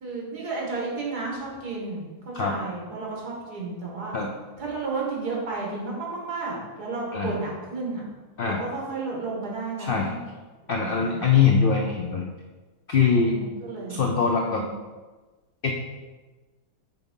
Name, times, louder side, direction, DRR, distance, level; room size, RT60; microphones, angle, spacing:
voice 1, 0.0-4.2 4.6-8.0 8.4-10.2 10.7-11.4 13.1-14.1 14.4-14.7, right 3 dB, 75° right, -3 dB, 2.1 m, -32 dB
voice 2, 9.8-10.1 10.7-12.2 12.9-13.3 13.9-14.6 15.6-15.7, left 6 dB, 90° left, 1 dB, 0.4 m, -22 dB
5.9 x 3.5 x 5.4 m, 1.3 s
omnidirectional pair, 1.7 m